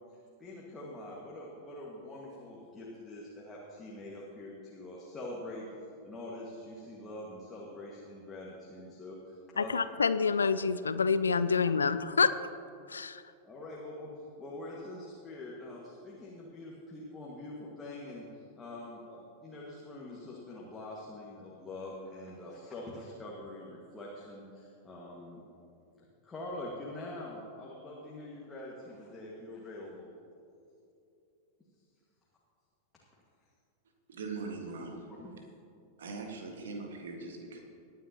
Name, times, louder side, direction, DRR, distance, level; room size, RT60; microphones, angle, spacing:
voice 1, 0.4-5.7 6.0-9.7 13.4-14.1 14.4-25.4 26.0-30.1 35.2-35.3, left 1 dB, 15° left, -4 dB, 1.8 m, -44 dB
voice 2, 9.6-12.3 12.9-13.2, left 5 dB, 75° left, 14 dB, 0.3 m, -27 dB
voice 3, 34.1-35.1 36.0-37.6, right 3 dB, 65° right, 2 dB, 1.7 m, -41 dB
20.5 x 9.6 x 2.9 m, 2.6 s
figure-of-eight pair, 90°, 0 cm